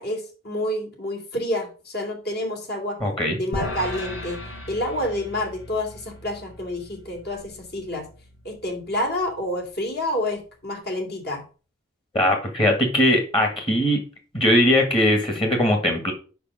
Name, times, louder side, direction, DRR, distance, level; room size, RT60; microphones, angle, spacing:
voice 1, 0.0-3.0 3.3-4.4 4.7-8.1 8.4-11.4, left 1 dB, 50° left, 2 dB, 2.8 m, -28 dB
voice 2, 3.0-3.4 12.1-14.0 14.3-16.1, left 1 dB, 25° left, 4 dB, 1.8 m, -20 dB
sound 1, 3.5-9.9, left 1 dB, 90° left, 4.7 m, -37 dB
6.7 x 5.5 x 6.5 m, 0.36 s
head